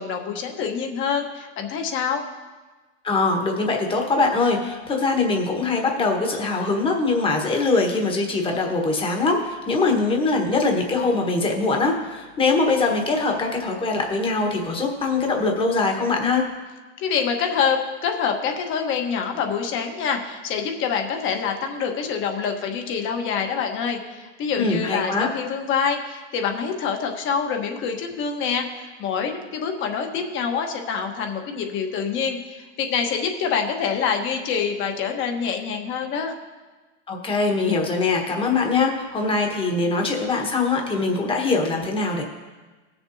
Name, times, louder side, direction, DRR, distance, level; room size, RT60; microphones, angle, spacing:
voice 1, 0.0-2.2 17.0-36.3, left 6 dB, 35° left, 4 dB, 1.3 m, -26 dB
voice 2, 3.0-16.4 24.6-25.3 37.1-42.2, left 3 dB, 15° left, 2 dB, 1.3 m, -22 dB
18.5 x 6.9 x 2.8 m, 1.3 s
supercardioid pair, 140°, 36 cm